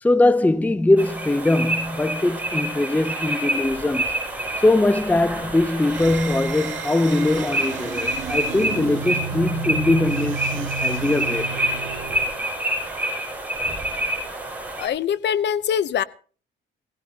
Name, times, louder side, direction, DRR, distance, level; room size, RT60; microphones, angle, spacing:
voice 1, 0.0-4.1 4.6-11.6, left 2 dB, 10° left, 0.5 m, -21 dB
sound 1, 1.0-14.9, right 1 dB, 10° right, 5.9 m, -28 dB
sound 2, 5.8-12.4, right 7 dB, 75° right, 1.8 m, -32 dB
voice 2, 14.8-16.0, left 8 dB, 60° left, 0.7 m, -23 dB
17.0 x 16.5 x 2.8 m
cardioid pair, 90°, 20 cm